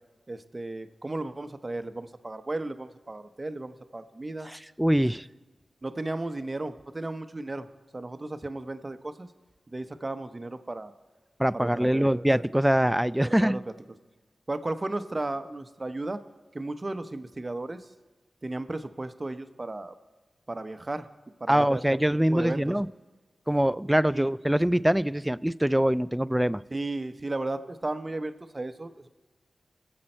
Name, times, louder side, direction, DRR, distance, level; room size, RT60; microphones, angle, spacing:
voice 1, 0.3-4.5 5.0-5.1 5.8-7.7 7.9-9.3 9.7-10.9 11.5-12.2 13.2-13.6 14.5-16.2 16.5-17.9 18.4-19.9 20.5-21.1 21.4-21.8 22.3-22.8 24.1-24.3 26.7-29.1, right 2 dB, 35° right, 10 dB, 0.8 m, -34 dB
voice 2, 4.4-5.3 11.4-13.6 21.5-22.9 23.5-26.6, right 1 dB, 10° right, 18 dB, 0.3 m, -24 dB
22.5 x 7.6 x 4.4 m, 1.3 s
cardioid pair, 50°, 0 cm